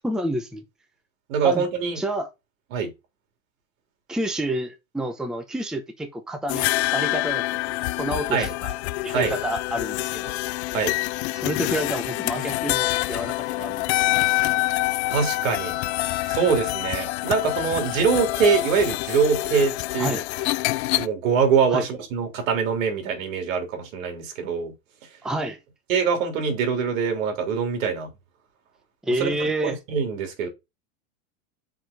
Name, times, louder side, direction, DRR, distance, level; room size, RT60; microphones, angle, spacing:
voice 1, 0.0-0.6 1.4-1.7 2.0-2.3 4.1-7.4 8.0-8.7 9.0-10.4 11.3-13.9 20.0-20.2 21.7-21.9 25.2-25.6 29.0-29.8, right 1 dB, ahead, 0.8 m, -29 dB
voice 2, 1.3-2.0 2.7-2.9 8.3-8.5 9.1-9.3 10.7-10.9 15.1-15.8 16.2-20.2 21.0-24.7 25.9-28.1 29.2-29.3 29.6-30.5, right 6 dB, 70° right, 3.3 m, -23 dB
sound 1, 6.5-21.1, left 19 dB, 55° left, 0.5 m, -26 dB
6.1 x 5.1 x 5.1 m
supercardioid pair, 150°, 40 cm